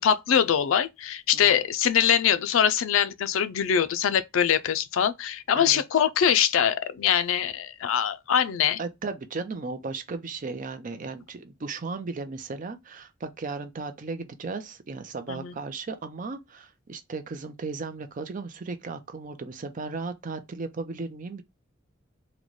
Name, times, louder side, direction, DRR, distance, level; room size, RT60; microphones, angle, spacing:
voice 1, 0.0-8.8 15.3-15.5, left 8 dB, 80° left, 0.4 m, -23 dB
voice 2, 8.8-21.4, right 4 dB, 40° right, 0.5 m, -35 dB
3.8 x 2.2 x 3.1 m
head